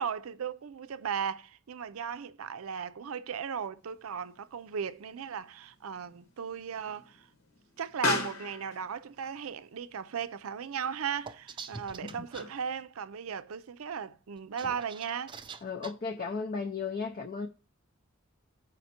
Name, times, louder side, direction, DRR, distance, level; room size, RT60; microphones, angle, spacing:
voice 1, 0.0-7.3 7.8-15.4, right 7 dB, 85° right, 0.5 m, -36 dB
Explosion, 3.8-12.8, left 4 dB, 75° left, 1.4 m, -40 dB
sound 1, 11.3-12.4 14.4-15.9, right 5 dB, 25° right, 0.4 m, -44 dB
voice 2, 15.6-17.5, left 4 dB, 40° left, 0.5 m, -35 dB
15.0 x 5.1 x 2.8 m
head